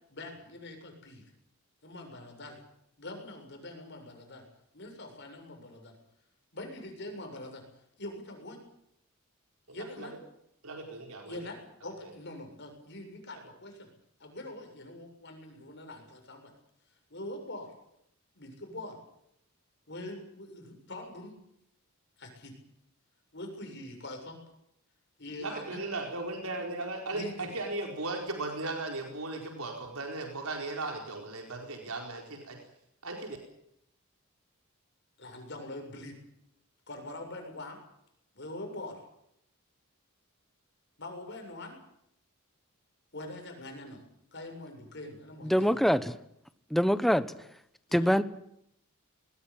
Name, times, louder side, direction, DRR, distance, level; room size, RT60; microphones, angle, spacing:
voice 1, 0.1-1.2 1.8-2.6 3.0-4.4 4.7-6.0 6.5-7.6 8.0-8.6 9.7-10.1 11.3-13.9 14.2-16.5 17.1-17.7 18.3-19.0 19.9-21.3 22.2-22.5 23.3-24.4 25.2-25.8 27.1-27.5 35.2-36.2 36.9-37.8 38.3-39.0 41.0-41.8 43.1-44.0 44.3-45.9 47.9-48.1, left 1 dB, 50° left, 4 dB, 7.4 m, -43 dB
voice 2, 9.7-10.1 10.6-11.4 12.0-12.1 25.4-32.6 33.0-33.4, right 2 dB, 80° right, 2 dB, 4.6 m, -37 dB
voice 3, 45.4-46.2 46.7-47.3 47.9-48.2, equal, ahead, 12 dB, 1.1 m, -24 dB
20.5 x 19.5 x 9.0 m, 0.75 s
head